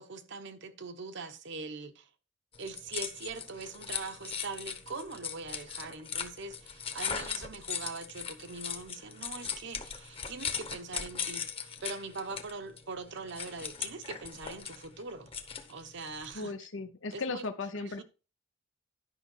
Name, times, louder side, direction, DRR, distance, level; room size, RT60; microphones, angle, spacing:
voice 1, 0.0-2.1 2.6-15.3 15.7-16.5 17.1-17.5 17.7-18.0, right 3 dB, 65° right, 1.0 m, -42 dB
sound 1, 2.5-16.4, left 7 dB, 30° left, 1.0 m, -39 dB
voice 2, 16.3-18.0, left 3 dB, 80° left, 0.7 m, -36 dB
11.0 x 5.7 x 4.5 m
head